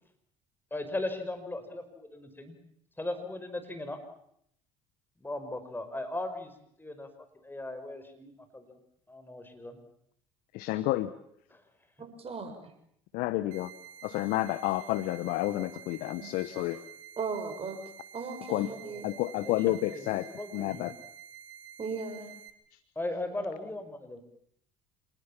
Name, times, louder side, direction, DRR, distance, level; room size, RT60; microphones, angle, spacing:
voice 1, 0.7-1.8 2.1-2.6 3.0-4.0 5.2-6.5 6.8-7.1 7.4-8.8 9.1-9.8 11.5-11.6 18.8-20.1 20.4-20.9 23.0-24.2, left 2 dB, 15° left, 8 dB, 5.3 m, -38 dB
voice 2, 10.5-11.1 13.1-13.7 14.0-16.8 18.5-18.7 19.0-20.3 20.5-20.9 22.7-22.8, left 16 dB, 65° left, 16 dB, 1.0 m, -30 dB
voice 3, 12.0-12.7 16.2-16.6 17.2-17.8 18.1-19.1 21.8-22.3, right 4 dB, 35° right, 7 dB, 6.2 m, -37 dB
sound 1, 13.5-22.5, right 8 dB, 80° right, 2.0 m, -50 dB
27.5 x 20.5 x 7.4 m, 0.71 s
hypercardioid pair, 65°, 16 cm